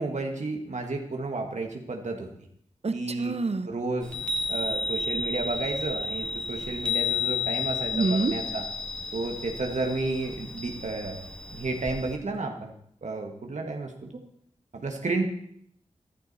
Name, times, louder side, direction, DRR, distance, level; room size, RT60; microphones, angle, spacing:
voice 1, 0.0-2.3 2.9-3.3 3.6-4.2 4.5-8.6 9.1-11.3 11.5-12.7 13.0-14.1 14.7-15.3, right 3 dB, 70° right, 2 dB, 1.6 m, -32 dB
voice 2, 2.8-3.7 7.9-8.3, right 3 dB, 55° right, 11 dB, 1.0 m, -26 dB
Chime, 4.0-12.2, left 4 dB, 10° left, 2.0 m, -32 dB
14.0 x 12.0 x 4.2 m, 0.70 s
cardioid pair, 45°, 12 cm